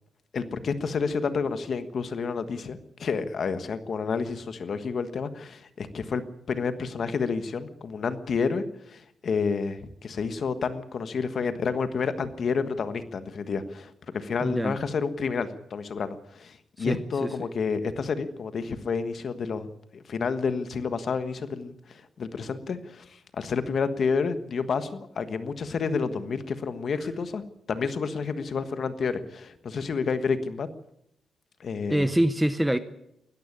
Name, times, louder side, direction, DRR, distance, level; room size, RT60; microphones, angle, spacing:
voice 1, 0.3-27.4 27.7-30.7 31.6-32.1, left 5 dB, 40° left, 1.3 m, -30 dB
voice 2, 14.4-14.8 16.8-17.3 31.9-32.8, right 1 dB, 5° right, 0.7 m, -25 dB
20.0 x 14.0 x 9.8 m
wide cardioid pair, 175°, 0 cm